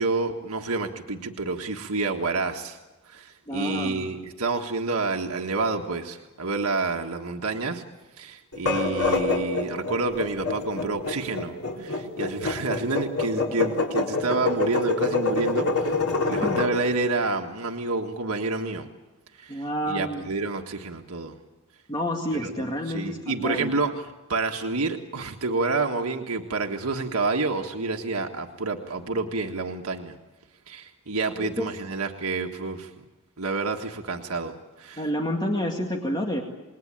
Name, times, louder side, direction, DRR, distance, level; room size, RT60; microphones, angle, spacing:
voice 1, 0.0-2.8 3.1-7.8 8.2-16.0 16.3-18.9 19.4-21.4 22.4-30.1 30.7-32.9 33.4-35.0, right 3 dB, 90° right, 3 dB, 1.6 m, -29 dB
voice 2, 3.5-4.0 16.4-16.6 19.5-20.2 21.9-23.2 23.4-23.7 31.4-31.7 35.0-36.4, equal, 20° left, 1 dB, 2.1 m, -28 dB
sound 1, 8.5-16.7, left 3 dB, 90° left, 3.9 m, -26 dB
28.0 x 20.5 x 9.0 m, 1.2 s
head